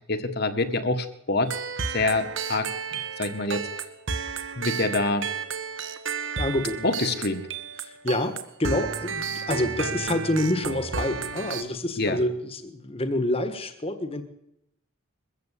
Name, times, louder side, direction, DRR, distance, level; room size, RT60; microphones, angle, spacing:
voice 1, 0.1-1.5 1.9-2.7 3.2-3.6 4.6-5.3 6.8-7.4 12.0-12.2, left 2 dB, 45° left, 8 dB, 1.6 m, -25 dB
sound 1, 1.5-11.6, right 5 dB, 60° right, 1.7 m, -32 dB
voice 2, 6.4-6.9 7.8-14.2, left 1 dB, 25° left, 10 dB, 1.5 m, -27 dB
22.5 x 15.0 x 8.4 m, 0.79 s
head